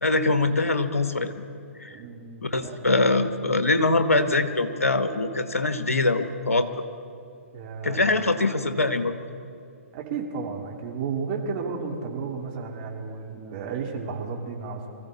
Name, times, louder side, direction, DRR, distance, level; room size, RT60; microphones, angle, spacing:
voice 1, 0.0-1.3 1.8-1.9 2.4-6.7 7.8-9.1, left 2 dB, 90° left, 9 dB, 1.1 m, -23 dB
voice 2, 1.9-2.9 7.3-8.0 9.9-14.9, right 5 dB, 40° right, 1 dB, 2.5 m, -33 dB
24.0 x 15.0 x 4.0 m, 2.4 s
figure-of-eight pair, 125°, 8 cm